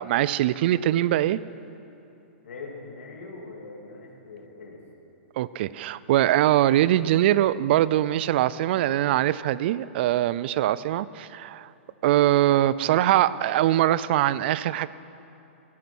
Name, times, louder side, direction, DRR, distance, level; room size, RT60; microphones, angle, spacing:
voice 1, 0.0-1.4 5.4-11.7 12.0-14.9, right 13 dB, 50° right, 18 dB, 0.4 m, -22 dB
voice 2, 2.4-4.8, left 3 dB, 85° left, -1 dB, 3.0 m, -41 dB
16.5 x 12.0 x 6.2 m, 2.9 s
hypercardioid pair, 140°, 7 cm